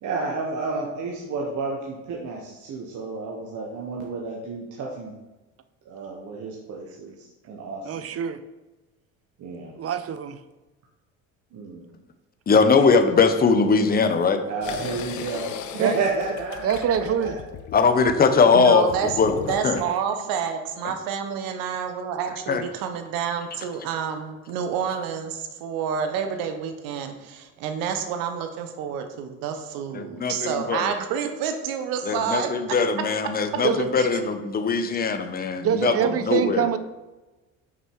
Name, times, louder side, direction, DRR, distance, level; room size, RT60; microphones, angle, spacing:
voice 1, 0.0-5.1 5.8-8.1 9.4-9.7 11.5-11.9 14.5-16.7 17.0-17.4, right 3 dB, 60° right, -2 dB, 1.3 m, -31 dB
voice 2, 7.8-8.4 9.8-10.4 15.8-15.9 16.6-17.4 33.6-33.9 35.6-36.8, right 8 dB, 45° right, 12 dB, 0.7 m, -25 dB
voice 3, 12.5-14.4 17.7-18.9 19.2-19.4 19.6-19.8 22.5-22.6 29.9-30.9 32.1-35.9 36.3-36.7, left 5 dB, 25° left, 8 dB, 0.8 m, -20 dB
sound 1, 14.6-20.0, left 8 dB, 60° left, 0.7 m, -36 dB
voice 4, 18.5-32.8 34.0-34.1 36.0-36.1 36.6-36.7, right 7 dB, 80° right, 6 dB, 1.1 m, -29 dB
5.9 x 5.5 x 4.7 m, 1.1 s
supercardioid pair, 85°, 34 cm